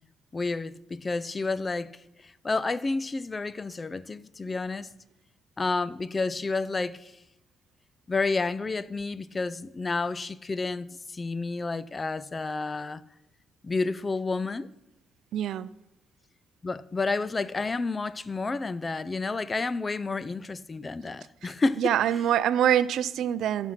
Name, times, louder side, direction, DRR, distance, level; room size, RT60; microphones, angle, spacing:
voice 1, 0.3-1.9 2.2-4.9 5.6-7.1 8.1-13.0 13.6-14.7 16.6-21.9, left 3 dB, 25° left, 0.4 m, -30 dB
voice 2, 15.3-15.7 21.4-23.7, right 10 dB, 75° right, 0.4 m, -25 dB
13.0 x 6.1 x 5.7 m
cardioid pair, 90°, 0 cm